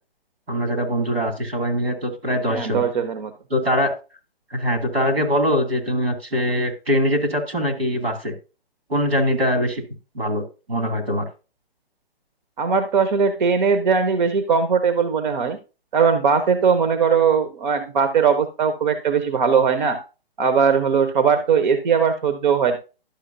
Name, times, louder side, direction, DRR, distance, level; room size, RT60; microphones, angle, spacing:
voice 1, 0.5-2.8 3.5-3.9 4.5-8.3 8.9-9.8 10.1-11.3, equal, 90° right, 5 dB, 2.6 m, -22 dB
voice 2, 2.5-3.3 12.6-15.6 15.9-20.0 20.4-22.8, right 6 dB, 50° right, 10 dB, 0.9 m, -19 dB
11.5 x 6.3 x 2.6 m, 0.32 s
figure-of-eight pair, 135°, 30 cm